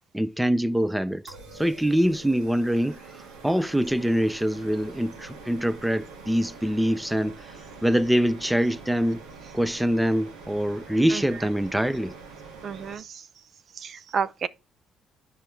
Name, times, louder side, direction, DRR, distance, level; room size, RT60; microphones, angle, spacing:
voice 1, 0.1-7.6 7.8-9.2 9.5-12.1, equal, 5° right, 0.5 m, -24 dB
sound 1, 1.3-12.9, right 4 dB, 85° right, 2.1 m, -45 dB
voice 2, 12.6-13.2 13.8-14.5, right 6 dB, 55° right, 0.6 m, -31 dB
10.0 x 5.6 x 4.5 m
cardioid pair, 80°, 0 cm